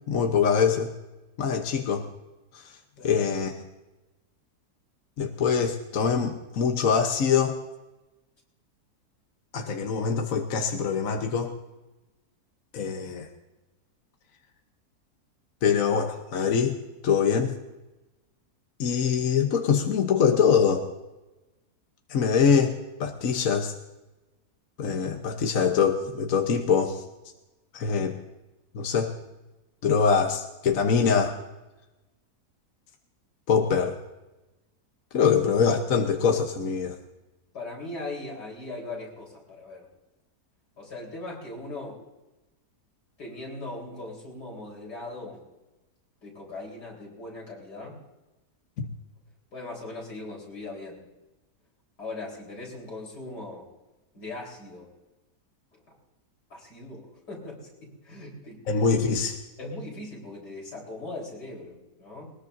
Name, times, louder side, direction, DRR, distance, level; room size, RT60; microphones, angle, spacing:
voice 1, 0.1-0.9 1.4-2.1 2.5-2.7 3.0-3.6 5.2-7.6 9.5-11.5 12.7-13.3 15.6-16.8 17.0-17.5 18.8-20.9 22.1-22.7 23.0-23.7 24.8-27.0 27.7-28.2 28.7-29.1 29.8-31.4 33.5-34.0 35.1-37.0 48.8-48.9 58.7-59.4, left 6 dB, 60° left, 4 dB, 1.4 m, -24 dB
voice 2, 37.5-39.9 40.8-42.0 43.2-45.4 46.2-48.0 49.5-51.0 52.0-53.7 54.1-54.9 56.5-58.6 59.6-62.3, left 2 dB, 85° left, -2 dB, 4.8 m, -39 dB
21.0 x 20.0 x 2.7 m, 1.0 s
omnidirectional pair, 1.7 m